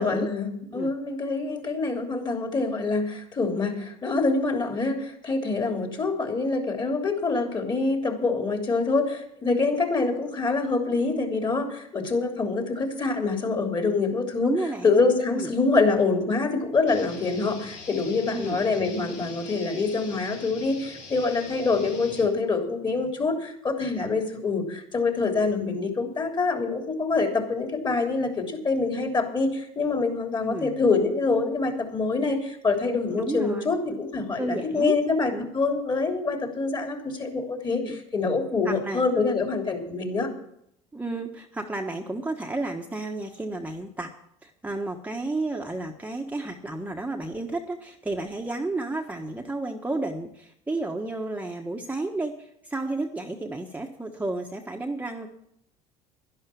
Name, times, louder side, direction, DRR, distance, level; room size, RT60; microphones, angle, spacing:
voice 1, 0.0-14.5 14.8-40.3, left 3 dB, 30° left, 4 dB, 3.3 m, -25 dB
voice 2, 14.4-14.9 15.3-15.5 18.3-18.6 30.4-30.7 33.2-34.0 34.3-35.0 35.3-35.5 37.8-38.0 38.6-39.3 40.9-44.1 44.4-55.3, right 2 dB, 10° right, 1 dB, 1.3 m, -32 dB
sound 1, 16.9-22.3, left 4 dB, 75° left, 4.5 m, -43 dB
11.5 x 11.0 x 7.1 m, 0.74 s
supercardioid pair, 95°, 16 cm